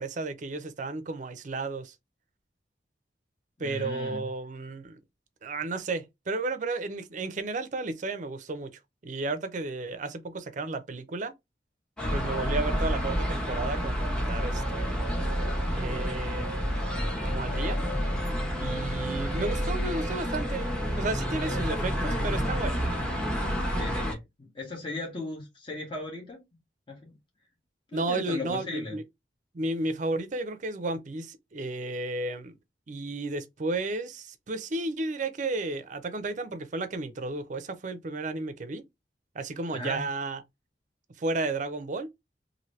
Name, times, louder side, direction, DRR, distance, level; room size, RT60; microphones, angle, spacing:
voice 1, 0.0-1.9 3.6-5.0 5.4-8.7 9.0-11.3 12.1-15.0 15.7-16.7 17.2-17.8 18.6-20.7 21.0-22.9 27.9-29.0 29.5-32.6 32.9-38.8 39.3-40.4 41.2-42.1, right 2 dB, 45° right, 0.5 m, -33 dB
voice 2, 3.6-4.3 18.5-18.9 23.7-26.4 26.9-27.1 27.9-29.0 39.7-40.0, left 2 dB, 30° left, 1.0 m, -37 dB
sound 1, 12.0-24.1, equal, 5° left, 0.8 m, -29 dB
2.8 x 2.6 x 3.0 m
head